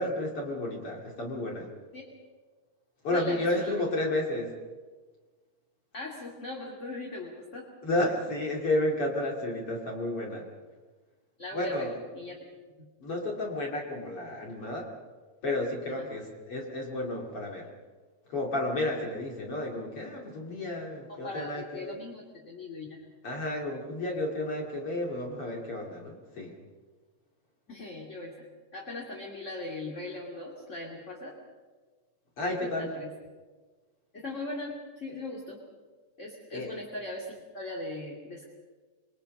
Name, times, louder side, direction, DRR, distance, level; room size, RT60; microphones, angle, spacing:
voice 1, 0.0-1.7 3.0-4.5 7.8-10.4 11.5-11.9 13.0-14.9 15.4-17.7 18.3-22.0 23.2-26.6 32.4-32.9 36.5-36.7, left 1 dB, 45° left, -1 dB, 3.2 m, -31 dB
voice 2, 3.1-3.8 5.9-7.7 11.4-11.9 12.1-12.4 12.8-12.9 16.0-16.1 21.1-23.0 27.7-31.4 32.5-33.1 34.1-35.6 36.2-38.4, left 2 dB, 25° left, -2 dB, 2.6 m, -39 dB
26.5 x 22.5 x 5.5 m, 1.4 s
omnidirectional pair, 3.7 m